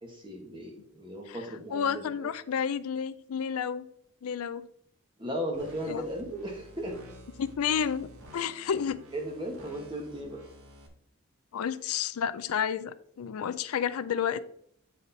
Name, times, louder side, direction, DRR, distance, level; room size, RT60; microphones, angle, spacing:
voice 1, 0.0-2.3 5.2-7.0 9.1-10.5, equal, 20° right, 1 dB, 1.3 m, -36 dB
voice 2, 1.7-3.9 4.2-4.7 5.9-6.0 7.4-9.0 11.5-14.4, left 7 dB, 90° left, 13 dB, 0.4 m, -31 dB
sound 1, 5.5-10.9, right 1 dB, 85° right, 1.4 m, -51 dB
8.1 x 4.2 x 4.0 m, 0.68 s
head